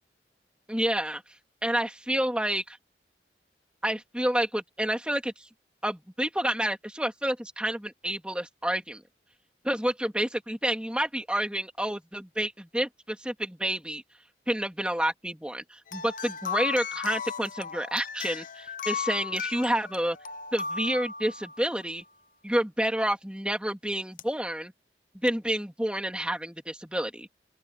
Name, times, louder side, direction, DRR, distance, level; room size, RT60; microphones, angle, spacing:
voice 1, 0.7-1.2 1.6-2.8 3.8-5.5 5.8-9.0 9.6-14.0 14.5-20.2 20.5-22.0 22.4-24.7 25.2-27.3, right 1 dB, 5° right, 2.7 m, -29 dB
sound 1, 15.9-21.8 24.2-24.3 25.3-25.4, left 6 dB, 45° left, 0.9 m, -36 dB
open air
head